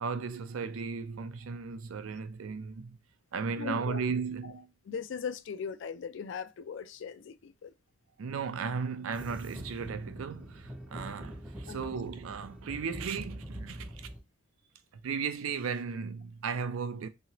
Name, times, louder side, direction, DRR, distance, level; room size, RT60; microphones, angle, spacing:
voice 1, 0.0-3.0 3.3-4.7 8.2-14.1 15.0-17.1, right 5 dB, 85° right, 0.4 m, -35 dB
voice 2, 3.6-4.0 4.4-4.5 4.8-7.7 11.7-12.0, left 6 dB, 60° left, 0.3 m, -39 dB
sound 1, 9.1-14.2, equal, 5° right, 0.6 m, -44 dB
2.9 x 2.8 x 2.9 m
head